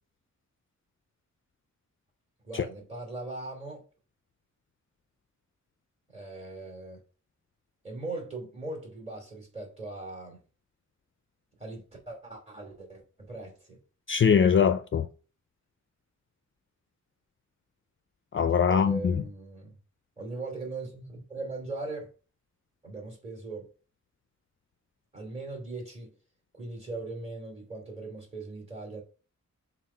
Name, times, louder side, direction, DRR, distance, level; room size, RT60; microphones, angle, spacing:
voice 1, 2.4-3.8 6.1-7.0 7.8-10.4 11.6-13.8 18.7-19.7 20.2-22.1 22.8-23.7 25.1-26.1 26.5-29.0, right 2 dB, 20° right, 2.5 m, -39 dB
voice 2, 14.1-15.1 18.3-19.2, left 7 dB, 45° left, 0.4 m, -22 dB
7.2 x 2.4 x 5.5 m
wide cardioid pair, 150°, 30 cm